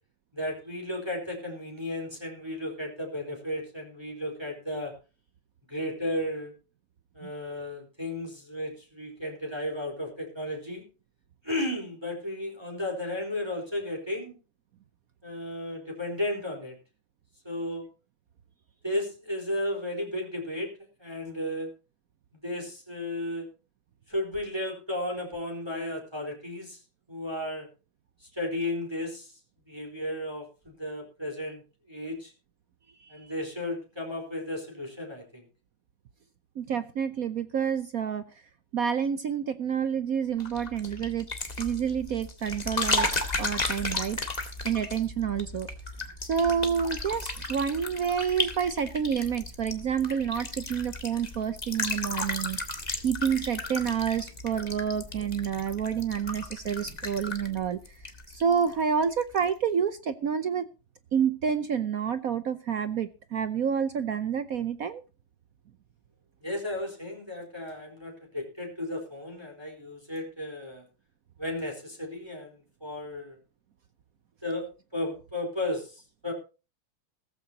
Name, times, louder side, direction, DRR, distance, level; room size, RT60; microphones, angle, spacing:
voice 1, 0.3-4.9 5.7-6.5 7.1-10.8 11.4-14.4 15.2-16.8 17.4-17.8 18.8-20.7 21.0-21.7 22.4-23.5 24.1-26.8 27.1-27.7 28.2-29.3 29.7-31.6 31.9-32.3 33.1-35.4 66.4-70.8 71.4-73.4 74.4-74.7 74.9-76.3, left 1 dB, 10° right, 0 dB, 4.2 m, -34 dB
voice 2, 33.0-33.3 36.6-38.2 38.7-41.3 41.6-43.1 43.4-44.2 44.6-45.7 46.2-52.6 53.0-57.8 58.3-60.7 61.1-65.0, right 7 dB, 60° right, 12 dB, 1.0 m, -28 dB
sound 1, 40.4-58.7 59.0-59.4, left 2 dB, 20° left, 1.8 m, -34 dB
16.5 x 14.5 x 2.8 m, 0.32 s
omnidirectional pair, 2.2 m